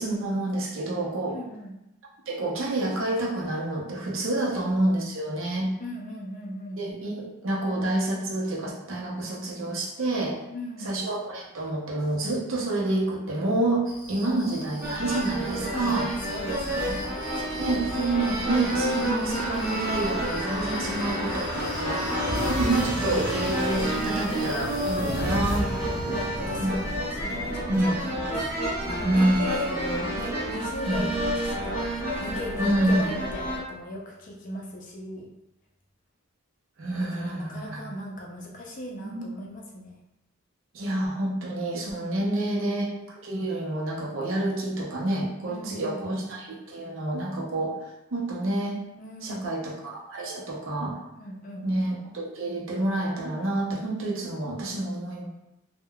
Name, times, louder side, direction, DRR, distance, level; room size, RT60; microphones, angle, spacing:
voice 1, 0.0-1.4 2.3-5.7 6.8-10.4 10.8-16.1 17.6-22.0 22.5-25.7 26.6-26.7 27.7-28.0 29.0-29.4 30.9-31.0 32.6-33.2 36.8-37.8 39.0-39.3 40.7-47.8 48.1-48.8 49.2-51.0 51.6-55.3, right 2 dB, 65° right, -3 dB, 0.6 m, -28 dB
voice 2, 1.3-1.7 5.8-6.8 10.5-10.9 14.2-14.4 16.3-17.7 25.0-25.8 26.1-28.4 28.9-35.3 37.1-40.0 45.4-46.2 49.0-49.5 51.1-51.7 54.9-55.2, left 1 dB, 35° left, -1 dB, 0.4 m, -38 dB
sound 1, 13.8-25.1, equal, 35° right, 1.2 m, -44 dB
sound 2, 14.8-33.6, right 1 dB, 10° right, 1.1 m, -30 dB
sound 3, 17.3-30.7 31.1-31.2, left 1 dB, 10° left, 1.1 m, -35 dB
3.6 x 2.1 x 2.2 m, 0.88 s
head